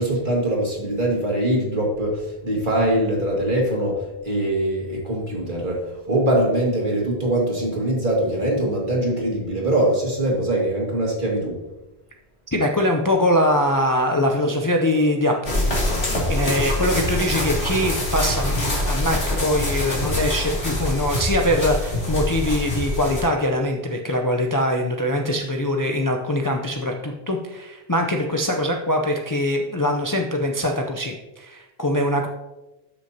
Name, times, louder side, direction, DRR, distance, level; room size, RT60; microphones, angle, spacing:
voice 1, 0.0-11.6, right 1 dB, 50° right, -3 dB, 2.5 m, -22 dB
voice 2, 12.5-32.3, left 1 dB, 25° left, 2 dB, 0.6 m, -23 dB
sound 1, 15.4-23.2, left 1 dB, 85° left, 2.9 m, -24 dB
12.5 x 6.4 x 2.8 m, 1.0 s
omnidirectional pair, 1.1 m